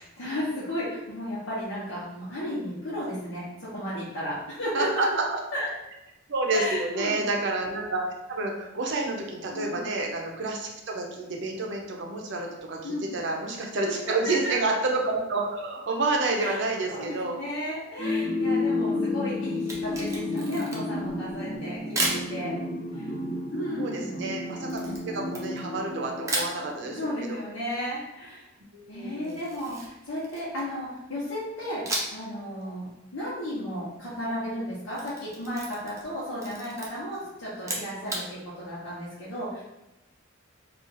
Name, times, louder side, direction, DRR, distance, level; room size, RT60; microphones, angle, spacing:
voice 1, 0.0-5.2 5.5-5.7 6.5-7.3 9.5-9.8 12.8-13.1 14.2-14.6 16.4-22.6 22.9-23.1 23.5-24.1 26.9-28.5 28.9-32.9 33.1-39.6, equal, 85° left, -10 dB, 0.9 m, -34 dB
voice 2, 4.7-5.4 6.3-8.0 8.3-17.4 18.7-19.3 23.8-27.4 28.7-29.4, right 2 dB, 60° right, 1 dB, 0.5 m, -29 dB
sound 1, 18.0-26.7, left 2 dB, 30° left, 0.7 m, -31 dB
Camera, 19.6-21.0 22.0-22.3 24.7-25.9 26.3-26.6 29.2-30.8 31.9-32.3 32.6-32.7 34.7-36.1 36.4-36.9 37.6-38.3, right 2 dB, 15° right, 0.5 m, -33 dB
2.5 x 2.4 x 3.9 m, 0.95 s
head